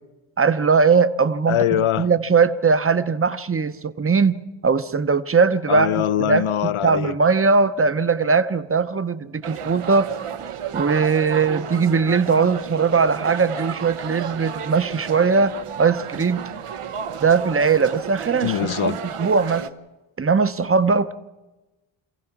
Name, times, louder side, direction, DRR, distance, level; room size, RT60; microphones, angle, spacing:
voice 1, 0.4-1.6 2.0-6.5 6.8-10.1 10.7-15.5 15.8-16.5 17.2-19.7 20.2-21.1, right 5 dB, 25° right, 0.7 m, -20 dB
voice 2, 1.5-2.1 5.7-7.1 18.4-19.0, left 10 dB, 75° left, 0.7 m, -22 dB
sound 1, 9.4-19.7, right 8 dB, 90° right, 1.1 m, -32 dB
27.0 x 16.5 x 5.9 m
wide cardioid pair, 155°, 50 cm